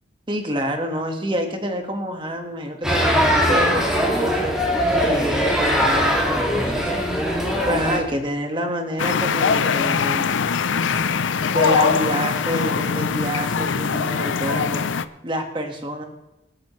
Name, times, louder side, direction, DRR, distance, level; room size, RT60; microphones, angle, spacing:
voice 1, 0.3-4.5 5.0-6.9 7.6-10.4 11.5-14.9 15.2-16.0, equal, 25° right, 4 dB, 1.6 m, -27 dB
sound 1, 2.8-8.0, equal, 5° right, 2.3 m, -20 dB
sound 2, 9.0-15.0, left 6 dB, 90° left, 0.6 m, -22 dB
25.5 x 8.7 x 3.2 m, 0.93 s
head